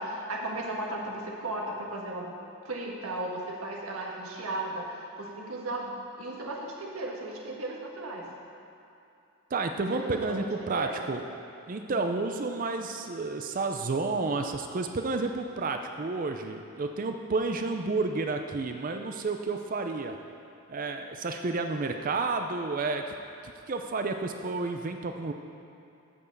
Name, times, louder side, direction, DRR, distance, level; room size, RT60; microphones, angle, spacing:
voice 1, 0.0-2.3 2.6-8.3 9.9-11.1 11.9-12.0, right 2 dB, 80° right, -2 dB, 1.5 m, -36 dB
voice 2, 9.5-11.2 11.7-20.2 20.7-23.0 23.4-25.3, right 3 dB, 40° right, 5 dB, 0.4 m, -31 dB
8.3 x 6.9 x 7.1 m, 2.7 s
head